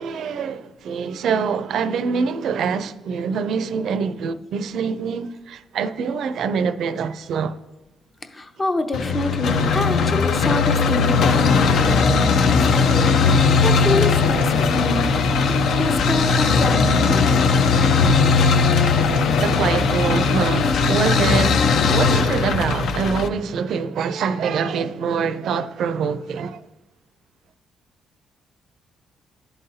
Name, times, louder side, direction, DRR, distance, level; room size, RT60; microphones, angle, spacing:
voice 1, 0.0-7.6 19.4-26.6, right 6 dB, 70° right, 0.4 m, -25 dB
voice 2, 8.3-13.1 13.6-15.1 15.5-17.2, left 2 dB, 25° left, 0.7 m, -26 dB
sound 1, 8.9-23.3, left 5 dB, 70° left, 0.5 m, -18 dB
11.5 x 3.9 x 2.7 m
cardioid pair, 90°, 0 cm